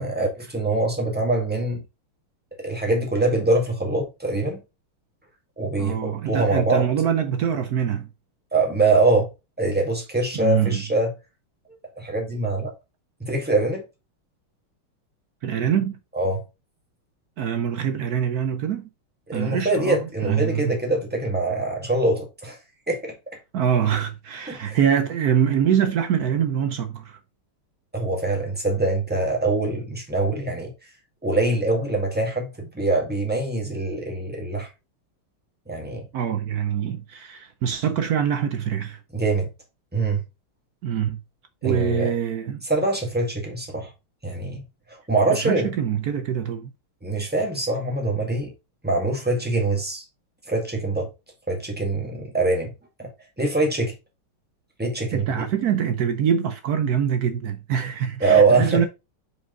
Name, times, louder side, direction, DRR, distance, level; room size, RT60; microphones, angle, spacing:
voice 1, 0.0-1.8 2.6-4.6 5.6-6.8 8.5-9.3 9.6-11.1 12.0-12.7 13.2-13.8 16.1-16.4 19.3-22.6 22.9-23.1 24.5-24.8 27.9-30.7 31.2-34.7 35.7-36.1 39.1-39.5 39.9-40.2 41.6-42.1 42.7-43.9 44.2-44.6 44.9-45.7 47.0-48.5 48.8-50.0 50.5-51.1 51.5-52.7 53.0-53.1 53.4-53.9 54.8-55.4 58.2-58.8, right 2 dB, 5° right, 1.6 m, -23 dB
voice 2, 5.8-8.1 10.3-10.8 15.4-16.0 17.4-18.9 19.3-20.8 23.5-27.2 36.1-39.0 40.8-41.2 41.6-42.6 45.3-46.7 55.1-58.9, right 8 dB, 75° right, 0.8 m, -24 dB
5.4 x 4.9 x 3.9 m
omnidirectional pair, 2.3 m